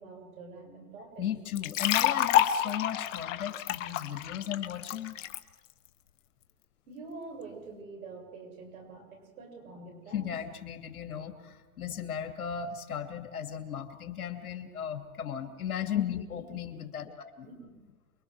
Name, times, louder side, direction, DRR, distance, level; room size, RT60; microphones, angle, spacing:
voice 1, 0.0-1.2 6.9-10.3 16.3-16.6 17.4-17.7, right 3 dB, 75° right, 2 dB, 7.4 m, -46 dB
voice 2, 1.2-5.2 10.1-17.5, left 9 dB, 85° left, 6 dB, 2.7 m, -36 dB
sound 1, 1.6-5.4, left 11 dB, 60° left, 1.5 m, -28 dB
29.0 x 23.0 x 4.8 m, 1.3 s
hypercardioid pair, 125°, 43 cm